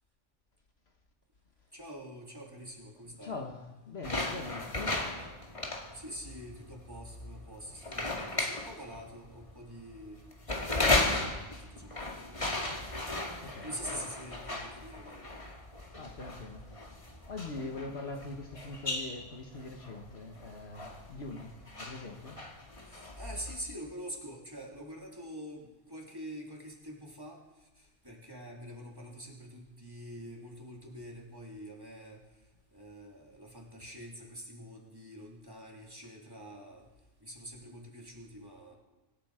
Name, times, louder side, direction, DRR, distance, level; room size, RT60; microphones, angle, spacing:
voice 1, 1.7-3.3 5.9-10.2 10.5-12.5 13.6-15.4 22.9-27.4 27.8-32.2 32.7-36.9 37.2-38.8, equal, 20° right, 3.1 m, -46 dB
voice 2, 3.2-5.1 11.2-11.5 13.4-13.7 15.9-22.4, left 3 dB, 55° left, 1.6 m, -43 dB
sound 1, 4.0-23.6, left 2 dB, 25° left, 1.9 m, -36 dB
25.0 x 12.0 x 5.0 m
omnidirectional pair, 1.3 m